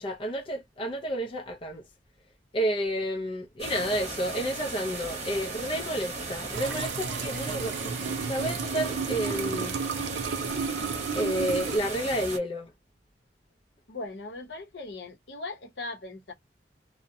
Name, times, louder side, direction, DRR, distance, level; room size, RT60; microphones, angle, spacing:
voice 1, 0.0-1.8 2.5-7.9 8.3-9.8 11.1-12.7, equal, 30° left, 0.4 m, -30 dB
sound 1, 3.6-12.4, right 3 dB, 40° right, 0.9 m, -37 dB
sound 2, 6.5-11.8, right 5 dB, 85° right, 0.4 m, -33 dB
voice 2, 13.9-16.3, left 2 dB, 65° left, 0.7 m, -39 dB
2.6 x 2.0 x 2.5 m
head